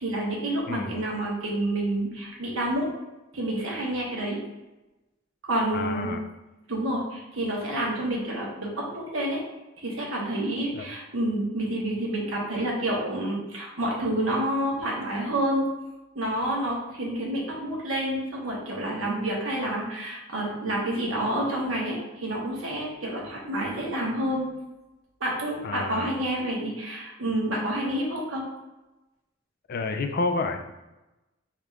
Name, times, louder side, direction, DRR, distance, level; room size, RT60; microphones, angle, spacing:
voice 1, 0.0-2.9 3.3-4.4 5.4-6.1 6.7-9.4 9.8-15.7 16.1-24.4 25.2-28.4, right 1 dB, 90° right, -3 dB, 1.1 m, -29 dB
voice 2, 5.7-6.2 10.7-10.9 25.6-26.1 29.7-30.6, left 3 dB, 50° left, 6 dB, 0.4 m, -29 dB
3.5 x 2.4 x 4.3 m, 1.0 s
head